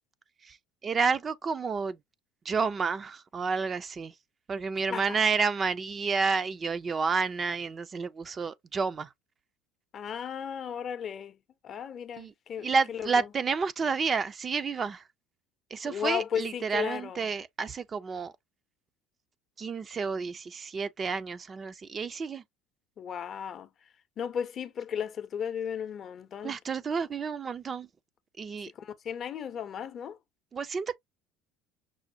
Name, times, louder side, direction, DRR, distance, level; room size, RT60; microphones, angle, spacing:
voice 1, 0.8-2.0 2.5-4.1 4.5-9.1 12.2-12.3 12.6-15.0 15.7-18.3 19.6-22.4 26.4-27.9 28.4-28.7 30.5-31.0, right 5 dB, 30° right, 0.4 m, -30 dB
voice 2, 9.9-11.4 11.6-13.3 15.8-17.3 23.0-23.7 24.2-26.6 28.7-30.2, left 8 dB, 45° left, 0.6 m, -35 dB
6.1 x 2.1 x 2.5 m
supercardioid pair, 85°, 0 cm